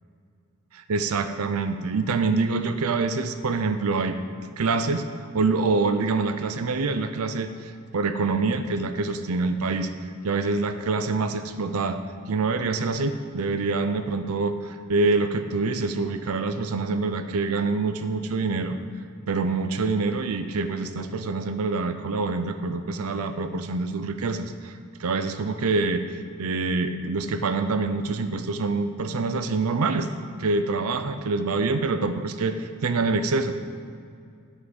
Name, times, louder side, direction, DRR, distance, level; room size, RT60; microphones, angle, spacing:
voice 1, 0.7-4.2 4.6-5.1 5.3-9.9 10.2-12.0 12.3-18.8 19.3-30.1 30.4-33.6, right 3 dB, 75° right, 9 dB, 0.6 m, -26 dB
9.9 x 6.1 x 7.1 m, 2.4 s
head